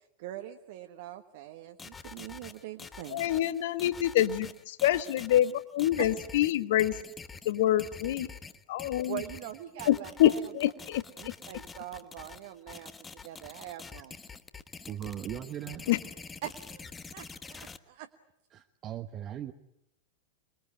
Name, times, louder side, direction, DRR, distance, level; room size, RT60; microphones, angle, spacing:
voice 1, 0.2-3.4 6.0-6.1 9.1-10.4 11.2-14.2 16.4-18.1, right 13 dB, 50° right, 6 dB, 1.4 m, -43 dB
sound 1, 1.8-17.8, left 5 dB, 15° left, 1.2 m, -46 dB
voice 2, 3.1-7.0 7.4-8.3 8.7-9.2 9.9-11.3 15.9-16.0, left 12 dB, 55° left, 13 dB, 1.3 m, -26 dB
voice 3, 14.9-15.9 18.5-19.5, right 11 dB, 30° right, 6 dB, 1.1 m, -39 dB
27.0 x 22.0 x 9.6 m, 0.83 s
figure-of-eight pair, 90°, 0 cm